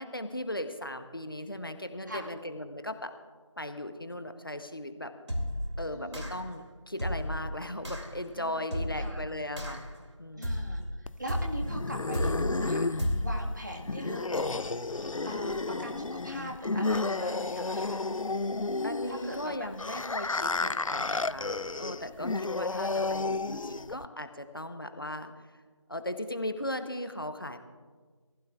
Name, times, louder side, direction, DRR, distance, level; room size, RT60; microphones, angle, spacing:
voice 1, 0.0-3.1 3.6-5.1 5.8-9.8 10.2-10.7 18.8-25.3 25.9-27.6, left 1 dB, 45° left, 8 dB, 0.9 m, -37 dB
sound 1, 5.3-5.7 6.1-6.5 7.0-7.4 7.8-8.1 8.7-9.1 9.6-10.0 10.4-10.8 11.3-11.7 12.1-12.6 13.0-13.4, equal, 65° right, 2.7 m, -32 dB
voice 2, 5.8-6.4 8.3-9.2 10.3-14.8 15.2-18.0 19.1-19.5 20.2-21.2 23.4-23.8, right 1 dB, 35° right, 0 dB, 1.7 m, -42 dB
sound 2, 11.1-24.1, left 3 dB, 85° left, 0.5 m, -32 dB
22.0 x 15.5 x 2.4 m, 1.5 s
figure-of-eight pair, 175°, 16 cm